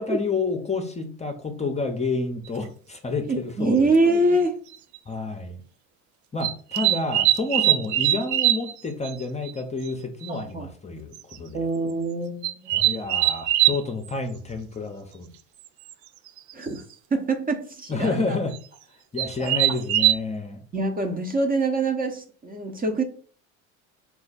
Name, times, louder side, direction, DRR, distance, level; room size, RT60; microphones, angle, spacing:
voice 1, 0.0-3.9 5.1-5.6 6.3-11.7 12.7-15.3 17.9-18.6 19.1-20.6, left 3 dB, 20° left, 0.7 m, -29 dB
sound 1, 2.5-2.6 3.9-4.0 4.7-5.0 6.4-8.7 9.0-9.1 9.5-9.6 9.9-10.0 10.2-10.3 11.1-11.4 12.4-13.8 15.9-16.0 16.3-16.6 18.5-18.6 19.2-20.1, right 14 dB, 55° right, 0.4 m, -22 dB
voice 2, 3.3-4.6 10.3-10.7 11.5-12.7 16.5-16.8 17.1-18.4 19.4-19.6 20.7-23.0, right 2 dB, 25° right, 0.8 m, -24 dB
4.2 x 2.5 x 4.0 m
hypercardioid pair, 75°, 37 cm